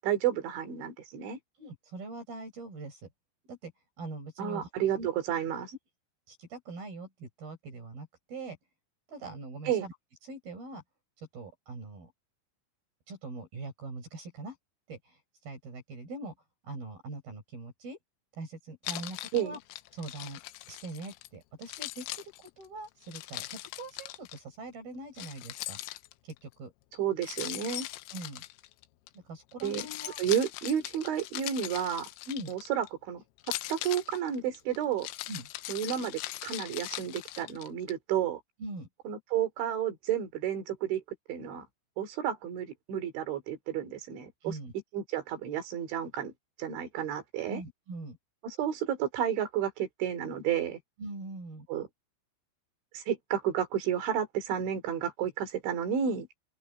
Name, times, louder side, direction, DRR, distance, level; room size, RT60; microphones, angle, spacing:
voice 1, 0.0-1.4 4.4-5.7 9.7-9.9 19.3-19.6 27.0-27.9 29.6-29.9 30.2-32.1 32.5-33.2 33.7-35.1 35.7-38.4 39.1-41.0 41.3-41.7 42.0-44.6 44.9-46.3 46.6-47.6 48.4-50.8 51.7-51.9 52.9-56.3, right 9 dB, 65° right, 5.1 m, -31 dB
voice 2, 1.6-3.1 3.5-3.7 4.0-4.7 4.9-5.1 6.3-8.6 9.1-9.9 10.2-10.8 11.2-12.1 13.1-14.6 14.9-16.3 16.6-18.0 18.3-19.6 19.9-20.4 20.7-25.8 26.2-26.7 28.1-28.4 29.1-30.2 32.3-32.5 35.3-35.5 38.6-38.9 44.4-44.7 47.5-48.2 51.0-51.7, right 2 dB, 50° right, 6.3 m, -42 dB
Keys jangling, 18.8-21.3 21.6-24.4 25.2-26.4 27.2-29.1 29.5-32.9 33.4-37.9, left 17 dB, 90° left, 3.5 m, -40 dB
open air
omnidirectional pair, 5.9 m